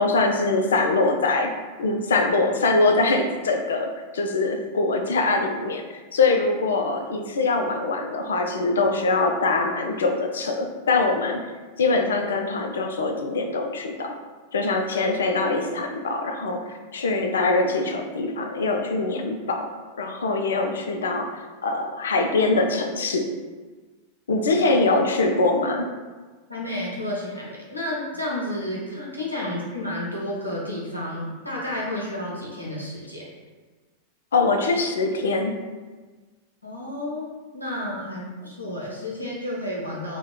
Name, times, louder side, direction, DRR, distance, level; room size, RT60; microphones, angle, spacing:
voice 1, 0.0-11.4 11.8-14.2 14.5-19.7 20.0-23.3 24.3-25.9 34.3-35.6, left 3 dB, 65° left, 5 dB, 0.3 m, -23 dB
voice 2, 26.5-33.2 36.6-37.3 37.5-40.2, left 1 dB, 85° left, -5 dB, 0.8 m, -31 dB
2.7 x 2.2 x 3.6 m, 1.3 s
figure-of-eight pair, 90°, 0 cm